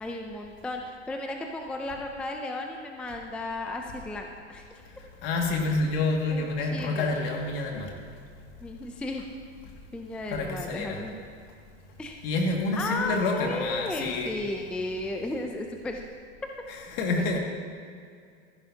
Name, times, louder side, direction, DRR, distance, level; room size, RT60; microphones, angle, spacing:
voice 1, 0.0-4.6 6.3-7.2 8.6-9.3 9.9-11.2 12.0-12.2 12.7-16.0 17.2-17.4, left 2 dB, 5° left, 3 dB, 0.4 m, -34 dB
voice 2, 5.2-7.9 10.3-11.0 12.2-14.3 17.0-17.4, left 3 dB, 60° left, 1 dB, 2.1 m, -28 dB
14.5 x 11.5 x 2.8 m, 2.2 s
supercardioid pair, 135°, 34 cm